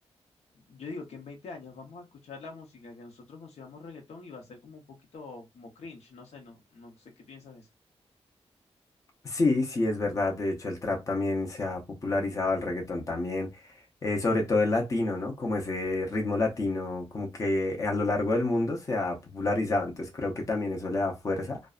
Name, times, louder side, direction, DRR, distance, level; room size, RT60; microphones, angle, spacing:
voice 1, 0.5-7.7, left 4 dB, 75° left, 0.7 m, -45 dB
voice 2, 9.2-13.5 14.0-21.6, left 2 dB, 30° left, 0.6 m, -28 dB
2.5 x 2.1 x 2.3 m
wide cardioid pair, 175°, 11 cm